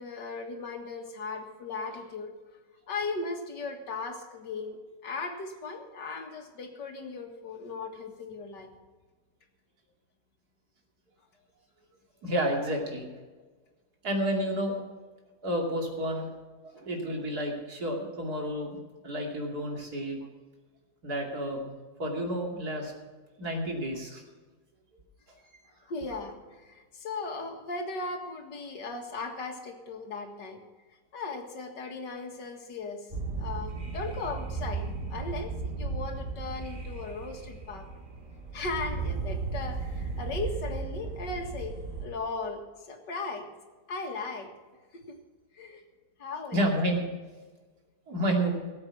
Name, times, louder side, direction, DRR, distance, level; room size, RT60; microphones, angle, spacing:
voice 1, 0.0-2.4 2.9-8.7 25.9-30.6 31.1-33.1 33.4-37.9 38.5-43.5 43.9-44.5 44.9-45.2 45.5-45.8 46.2-46.6, left 3 dB, 90° left, 4 dB, 2.4 m, -37 dB
voice 2, 12.2-13.0 14.0-14.8 15.4-16.3 16.7-18.8 19.0-20.2 21.0-21.7 22.0-22.9 23.4-24.2 46.5-47.0 48.1-48.5, equal, 65° right, 0 dB, 3.2 m, -30 dB
sound 1, 33.1-42.1, right 4 dB, 30° right, 2.1 m, -35 dB
18.0 x 7.9 x 6.0 m, 1.3 s
omnidirectional pair, 1.8 m